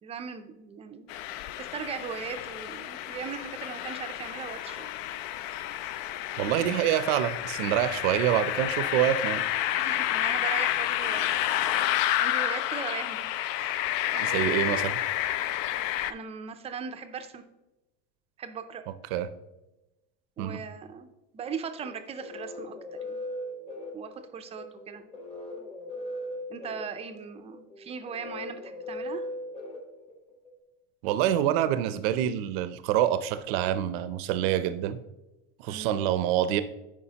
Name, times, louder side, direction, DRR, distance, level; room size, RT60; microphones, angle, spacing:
voice 1, 0.0-4.9 9.8-11.3 11.8-13.8 14.1-14.6 16.0-17.4 18.4-18.8 20.4-21.1 21.3-23.2 23.9-25.0 26.5-29.3 35.7-36.0, right 6 dB, 20° right, 8 dB, 0.4 m, -39 dB
sound 1, 1.1-16.1, left 13 dB, 70° left, 0.4 m, -30 dB
voice 2, 6.4-9.4 14.2-15.0 19.1-19.3 20.4-20.6 31.0-35.0 35.6-36.6, right 11 dB, 85° right, 12 dB, 0.6 m, -26 dB
sound 2, 21.8-30.5, left 1 dB, 20° left, 1.2 m, -39 dB
10.0 x 4.7 x 2.8 m, 1.0 s
cardioid pair, 150°, 29 cm